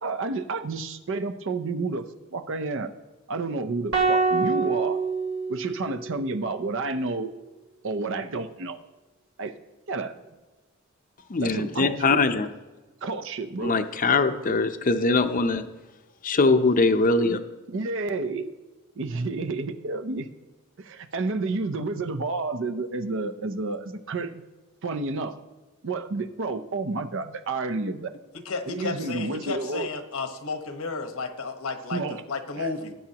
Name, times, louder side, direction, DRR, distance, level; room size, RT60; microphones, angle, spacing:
voice 1, 0.0-2.9 3.3-5.0 5.5-7.3 7.8-8.8 9.4-9.5 9.9-10.1 11.4-12.2 13.0-13.8 17.7-18.5 19.0-20.3 20.8-24.4 24.8-25.4 25.8-28.1 28.7-29.9 31.9-32.2 32.6-32.7, right 3 dB, 60° right, 9 dB, 0.6 m, -30 dB
sound 1, 3.9-6.2, right 4 dB, 80° right, 2.2 m, -25 dB
voice 2, 11.3-12.5 13.6-15.6 16.2-17.4, left 3 dB, 40° left, 9 dB, 0.6 m, -22 dB
voice 3, 28.4-32.9, left 4 dB, 85° left, 6 dB, 1.2 m, -32 dB
18.5 x 8.5 x 2.9 m, 1.2 s
head